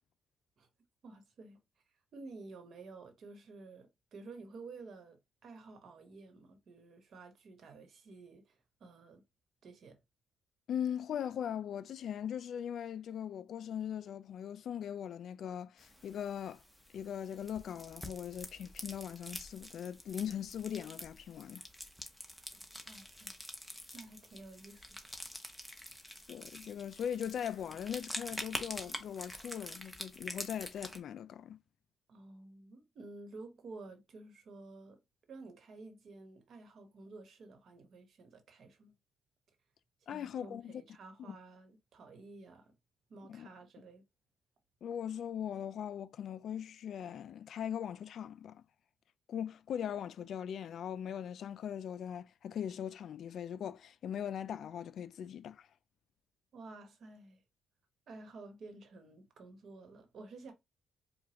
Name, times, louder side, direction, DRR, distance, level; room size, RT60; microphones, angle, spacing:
voice 1, 1.0-1.6 2.1-9.2 9.6-10.0 22.4-22.5 22.9-23.4 23.9-24.9 32.1-35.0 35.3-38.9 40.0-42.7 43.1-44.0 56.5-57.4 58.1-60.5, right 3 dB, 60° right, 1.1 m, -52 dB
voice 2, 10.7-16.6 16.9-21.6 26.3-31.6 40.1-40.7 41.2-41.4 43.3-43.5 44.8-48.6 49.3-55.7, left 9 dB, 65° left, 0.3 m, -40 dB
sound 1, 15.8-31.0, equal, 5° left, 0.9 m, -47 dB
4.8 x 2.3 x 3.0 m
cardioid pair, 90°, 0 cm